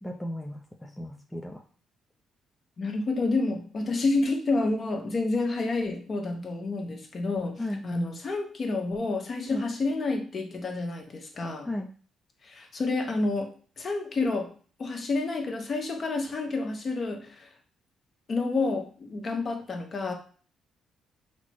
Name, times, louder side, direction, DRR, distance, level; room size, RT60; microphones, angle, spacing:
voice 1, 0.0-1.6 7.6-7.8 9.5-9.6 11.6-11.9, left 1 dB, 5° left, 0 dB, 0.5 m, -35 dB
voice 2, 2.8-11.7 12.4-13.5 13.8-14.5 14.8-17.5 18.3-20.1, left 3 dB, 40° left, 3 dB, 0.8 m, -29 dB
4.2 x 2.0 x 4.4 m, 0.41 s
cardioid pair, 90°, 0 cm